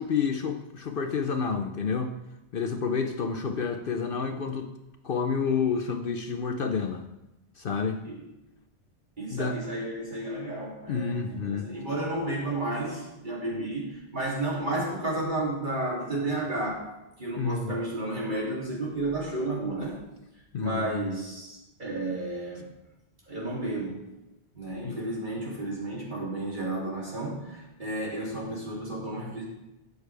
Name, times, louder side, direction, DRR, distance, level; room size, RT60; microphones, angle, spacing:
voice 1, 0.0-2.1 2.5-4.7 5.0-7.0 7.6-8.0 9.3-9.6 10.9-11.7 17.4-17.8 20.5-21.1 24.8-25.0 26.8-26.9, left 5 dB, 55° left, 6 dB, 0.8 m, -29 dB
voice 2, 9.2-16.9 17.2-20.0 20.6-22.7 23.3-24.0 24.5-29.4, right 2 dB, 45° right, -4 dB, 2.9 m, -32 dB
13.0 x 8.1 x 3.3 m, 0.94 s
omnidirectional pair, 1.2 m